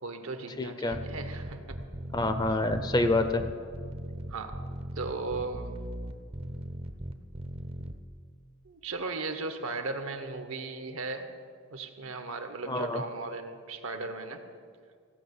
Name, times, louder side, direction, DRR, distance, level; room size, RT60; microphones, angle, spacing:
voice 1, 0.0-1.8 4.3-4.6 5.0-5.7 7.9-8.0 8.6-11.3 11.7-14.4, right 3 dB, 65° right, 7 dB, 1.0 m, -36 dB
voice 2, 0.6-1.0 2.1-3.4 12.7-13.0, left 2 dB, 20° left, 9 dB, 0.6 m, -27 dB
sound 1, 0.9-7.9, right 1 dB, 25° right, 0.6 m, -38 dB
16.0 x 5.7 x 8.2 m, 2.1 s
head